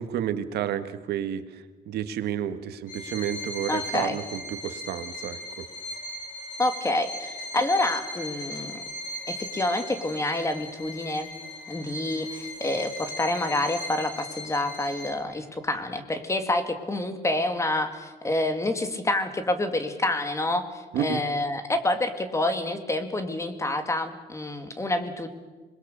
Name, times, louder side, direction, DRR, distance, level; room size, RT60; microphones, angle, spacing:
voice 1, 0.0-5.4 20.9-21.2, right 9 dB, 70° right, 9 dB, 1.8 m, -31 dB
Bowed string instrument, 2.9-15.4, left 1 dB, 50° left, 7.8 m, -38 dB
voice 2, 3.7-4.2 6.6-8.8 9.3-11.3 11.7-25.3, left 2 dB, 15° left, 8 dB, 2.2 m, -28 dB
26.0 x 21.5 x 6.8 m, 1.3 s
cardioid pair, 110°, 17 cm